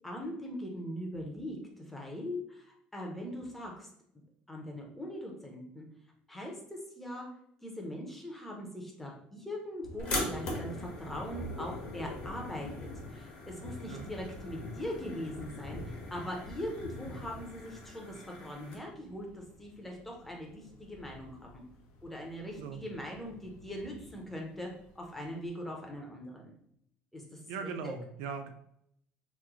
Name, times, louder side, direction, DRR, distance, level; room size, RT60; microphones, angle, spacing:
voice 1, 0.0-3.9 4.5-5.9 6.3-7.3 7.6-21.6 22.0-24.7 25.0-26.6 27.1-27.4 27.8-27.9, equal, 5° left, -1 dB, 0.5 m, -41 dB
Thunder, 9.8-25.4, left 2 dB, 80° left, 0.6 m, -46 dB
sound 1, 10.0-18.7, left 2 dB, 35° left, 0.9 m, -42 dB
voice 2, 27.5-28.5, right 5 dB, 80° right, 7 dB, 0.4 m, -39 dB
3.0 x 2.0 x 3.5 m, 0.72 s
cardioid pair, 175°, 3 cm